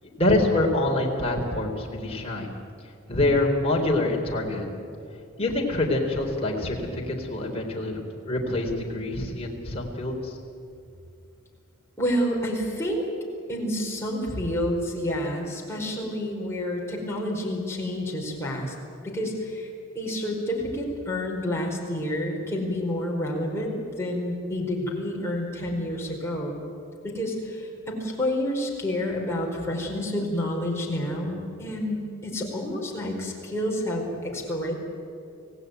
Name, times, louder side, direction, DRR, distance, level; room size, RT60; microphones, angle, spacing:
voice 1, 0.0-2.5 3.1-4.7 5.4-10.4, left 2 dB, 30° left, -1 dB, 3.8 m, -26 dB
voice 2, 12.0-13.1 13.5-18.7 19.0-19.7 19.9-26.6 27.0-34.7, left 1 dB, 10° left, -2 dB, 4.9 m, -29 dB
26.5 x 17.0 x 9.4 m, 2.5 s
head